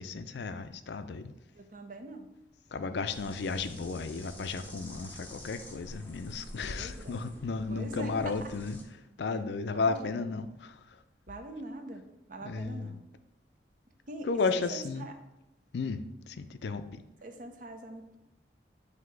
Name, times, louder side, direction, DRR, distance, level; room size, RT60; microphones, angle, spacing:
voice 1, 0.0-1.3 2.7-8.8 9.2-10.8 12.4-13.0 14.2-15.1 15.7-17.0, left 4 dB, 65° left, 10 dB, 0.4 m, -34 dB
voice 2, 1.6-2.3 6.7-7.3 7.7-8.5 9.7-10.2 11.3-12.0 12.3-13.0 14.1-15.1 17.2-18.2, right 2 dB, 45° right, 6 dB, 0.6 m, -43 dB
sound 1, 3.1-8.8, left 1 dB, 10° left, 0.7 m, -48 dB
8.0 x 2.8 x 4.6 m, 0.94 s
head